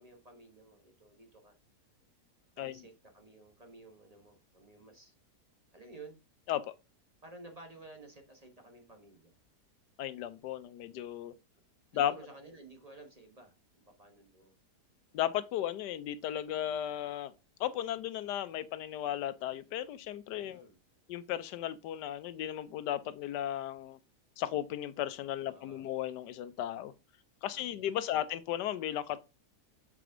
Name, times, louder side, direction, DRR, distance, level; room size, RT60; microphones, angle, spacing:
voice 1, 0.0-1.6 2.6-5.1 5.7-6.2 7.2-9.3 11.9-14.5 20.4-20.8 25.4-25.9 27.4-28.2, right 2 dB, 25° right, 1.1 m, -54 dB
voice 2, 10.0-11.3 11.9-12.1 15.1-17.3 17.6-20.7 21.1-24.0 24.4-26.9 27.4-29.2, left 11 dB, 90° left, 1.2 m, -35 dB
6.9 x 4.9 x 3.7 m
omnidirectional pair, 1.8 m